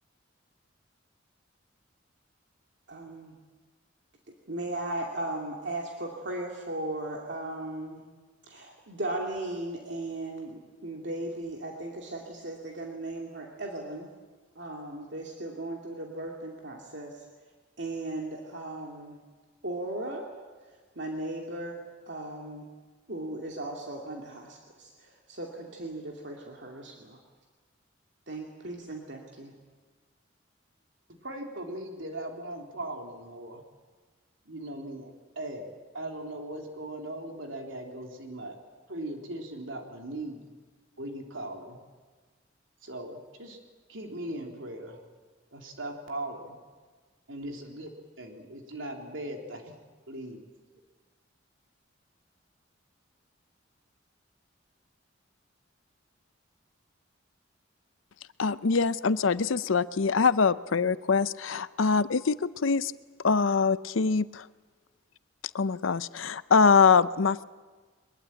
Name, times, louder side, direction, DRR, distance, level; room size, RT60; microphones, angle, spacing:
voice 1, 2.9-3.3 4.5-8.0 8.4-14.1 14.5-17.3 17.8-19.2 19.6-20.3 21.0-22.7 23.1-27.2 28.3-29.5, right 1 dB, 60° right, 0 dB, 2.6 m, -37 dB
voice 2, 31.2-33.6 34.5-35.1 35.4-38.6 38.9-40.5 41.0-41.8 42.8-43.6 43.9-45.0 45.5-46.6 47.3-47.9 48.2-49.8 50.1-50.4, right 1 dB, 80° right, 2 dB, 3.6 m, -39 dB
voice 3, 58.4-62.9 63.2-64.5 65.5-67.4, left 5 dB, 80° left, 16 dB, 0.6 m, -24 dB
23.0 x 21.0 x 9.1 m, 1.4 s
head